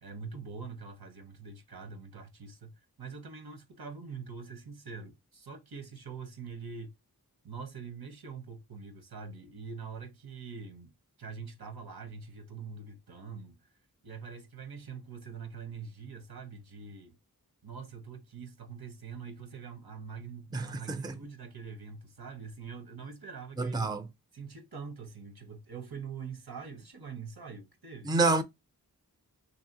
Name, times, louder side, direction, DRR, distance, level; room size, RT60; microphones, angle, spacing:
voice 1, 0.0-2.7 3.0-6.9 7.4-10.9 11.2-13.6 14.0-17.1 17.6-23.9 24.3-28.2, right 5 dB, 90° right, 0.8 m, -44 dB
voice 2, 20.5-21.2 23.6-24.1 28.0-28.4, right 3 dB, 10° right, 0.4 m, -28 dB
3.1 x 2.7 x 2.6 m
wide cardioid pair, 45°, 36 cm